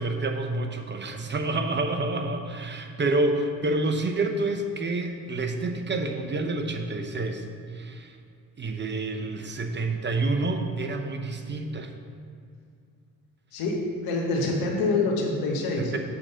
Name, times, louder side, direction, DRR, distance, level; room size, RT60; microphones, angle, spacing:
voice 1, 0.0-8.2 8.6-11.9 15.8-16.0, right 2 dB, 30° right, 5 dB, 0.8 m, -28 dB
voice 2, 13.5-15.9, left 3 dB, 75° left, 0 dB, 1.4 m, -26 dB
7.3 x 3.8 x 6.6 m, 2.4 s
supercardioid pair, 60°, 37 cm